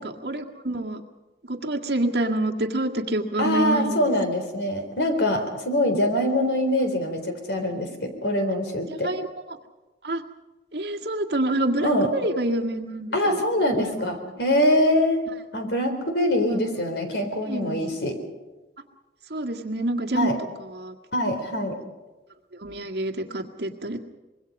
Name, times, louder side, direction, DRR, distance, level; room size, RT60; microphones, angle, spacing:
voice 1, 0.2-1.0 1.5-4.1 9.0-9.6 10.0-10.2 10.7-13.4 13.8-14.1 16.5-16.6 17.5-18.0 19.3-20.3 20.7-20.9 22.6-24.0, right 1 dB, 65° right, 2 dB, 1.8 m, -27 dB
voice 2, 3.4-9.1 11.8-12.1 13.1-18.2 20.1-20.4 21.1-21.8, left 1 dB, 70° left, 6 dB, 3.9 m, -24 dB
25.5 x 22.0 x 5.4 m, 1.1 s
head